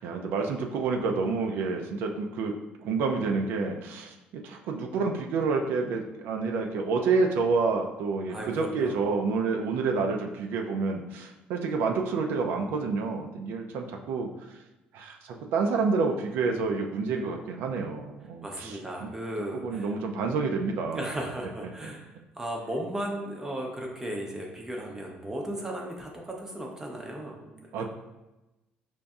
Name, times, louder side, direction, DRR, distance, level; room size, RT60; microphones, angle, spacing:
voice 1, 0.0-2.6 2.8-14.6 14.9-19.1 19.5-21.1 27.7-27.9, right 4 dB, 80° right, 3 dB, 0.4 m, -29 dB
voice 2, 8.3-9.0 18.4-19.9 20.9-27.9, right 1 dB, 15° right, 0 dB, 0.6 m, -36 dB
5.2 x 2.6 x 2.3 m, 1.0 s
cardioid pair, 125°, 4 cm